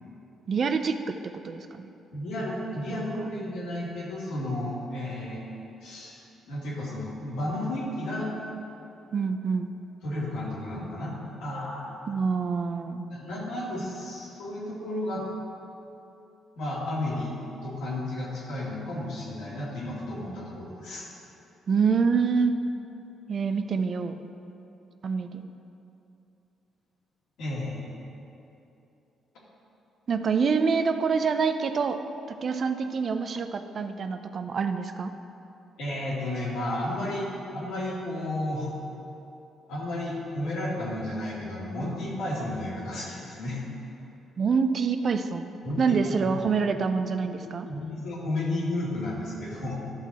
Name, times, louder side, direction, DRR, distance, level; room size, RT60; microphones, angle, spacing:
voice 1, 0.5-1.9 2.9-3.1 9.1-9.7 12.1-13.1 21.7-22.5 23.3-24.2 25.0-25.4 30.1-32.0 32.3-35.1 44.4-45.5 45.8-47.7, right 5 dB, 50° right, 8 dB, 0.5 m, -26 dB
voice 2, 2.1-5.4 5.8-6.2 6.5-8.3 10.0-12.1 13.1-15.2 16.6-17.3 17.6-21.1 27.4-27.9 35.8-38.7 39.7-43.6 45.6-46.6 47.2-49.8, left 1 dB, 80° left, -5 dB, 2.1 m, -33 dB
11.5 x 6.1 x 4.2 m, 2.8 s
cardioid pair, 90°, 0 cm